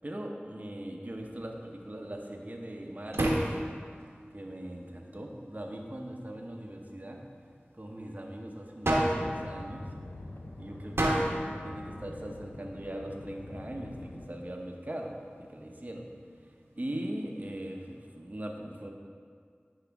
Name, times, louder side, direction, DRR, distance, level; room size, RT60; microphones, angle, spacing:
voice 1, 0.0-3.6 4.3-7.2 7.7-9.9 10.6-16.1 16.7-18.9, right 1 dB, 40° right, 1 dB, 0.8 m, -40 dB
sound 1, 1.1-18.0, right 1 dB, 85° right, 1.0 m, -37 dB
sound 2, 9.2-14.3, left 1 dB, 75° left, 0.6 m, -45 dB
10.0 x 4.8 x 3.5 m, 2.1 s
wide cardioid pair, 40°, 4 cm